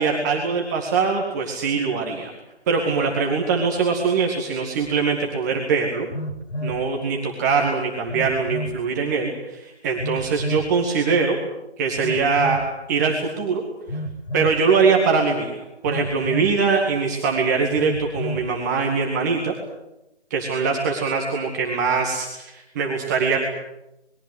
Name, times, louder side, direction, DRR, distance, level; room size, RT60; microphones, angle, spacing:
voice 1, 0.0-2.3 2.7-6.1 6.6-11.4 11.8-12.6 12.9-13.6 14.3-19.5 20.3-23.4, right 5 dB, 15° right, 0 dB, 2.1 m, -22 dB
Telephone, 4.8-4.9 6.1-6.8 8.1-8.8 10.0-10.7 12.0-12.7 13.9-14.6 15.9-16.6 17.8-18.5, equal, 65° left, 2.7 m, -30 dB
27.5 x 21.5 x 7.9 m, 0.88 s
figure-of-eight pair, 150°, 33 cm